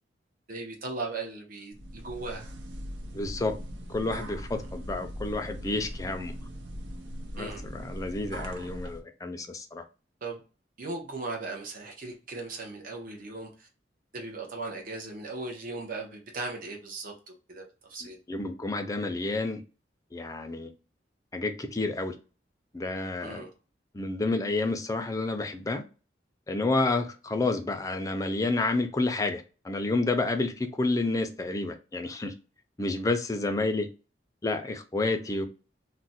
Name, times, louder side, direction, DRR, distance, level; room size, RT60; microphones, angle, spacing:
voice 1, 0.5-2.5 7.4-7.6 10.2-10.4 10.8-13.7 14.1-17.6 17.9-18.2 23.2-23.5, right 3 dB, 50° right, 0.7 m, -38 dB
sound 1, 1.7-9.0, equal, 85° right, 0.6 m, -40 dB
voice 2, 3.1-3.6 3.9-6.3 7.3-9.8 18.3-19.6 20.1-20.7 21.3-22.1 22.7-23.4 23.9-25.8 26.5-32.3 32.8-33.9 34.4-35.5, left 2 dB, 20° left, 0.4 m, -30 dB
2.4 x 2.1 x 3.9 m
head